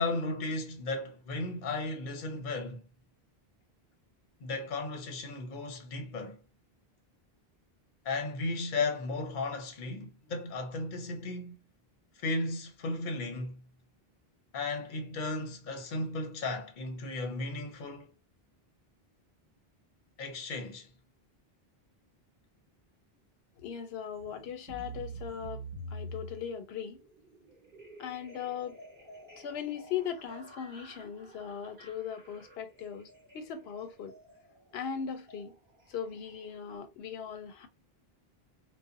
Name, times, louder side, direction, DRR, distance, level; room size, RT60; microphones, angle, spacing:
voice 1, 0.0-2.9 4.4-6.4 8.0-11.6 12.2-13.6 14.5-18.1 20.2-20.9, left 3 dB, 55° left, 0.8 m, -35 dB
voice 2, 23.6-25.6 25.9-27.0 28.0-28.8 29.4-34.1 34.7-35.5 35.9-37.7, left 8 dB, 85° left, 0.8 m, -39 dB
sound 1, 24.1-36.8, right 1 dB, 60° right, 1.2 m, -49 dB
2.4 x 2.2 x 2.5 m
omnidirectional pair, 1.0 m